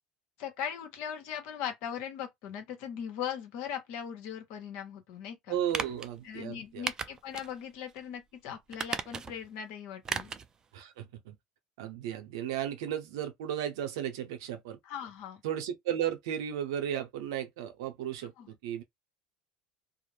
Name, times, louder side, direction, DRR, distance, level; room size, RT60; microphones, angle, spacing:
voice 1, 0.4-5.6 6.2-10.3 14.8-15.4 18.4-18.5, left 8 dB, 70° left, 1.0 m, -39 dB
voice 2, 5.5-6.9 10.7-11.4 11.8-14.8 15.4-18.8, right 10 dB, 80° right, 0.7 m, -35 dB
sound 1, 5.7-6.1 6.9-7.5 7.9-8.0 8.7-9.5 10.0-10.5 10.8-10.9, right 5 dB, 30° right, 0.4 m, -35 dB
2.4 x 2.1 x 3.1 m
supercardioid pair, 90°, 2 cm